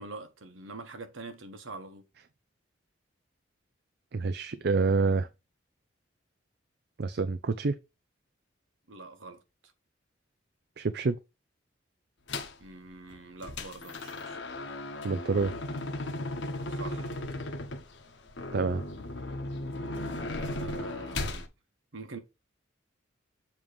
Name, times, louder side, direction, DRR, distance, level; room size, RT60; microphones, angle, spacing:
voice 1, 0.0-2.0 8.9-9.7 12.6-14.4 16.7-17.1 20.4-21.5 21.9-22.2, right 3 dB, 85° right, 1.3 m, -44 dB
voice 2, 4.1-5.3 7.0-7.8 10.8-11.2 15.0-15.5 18.5-18.8, right 4 dB, 55° right, 0.5 m, -27 dB
sound 1, 12.3-12.6 13.1-21.5, left 2 dB, 65° left, 1.1 m, -36 dB
7.3 x 3.1 x 5.2 m
head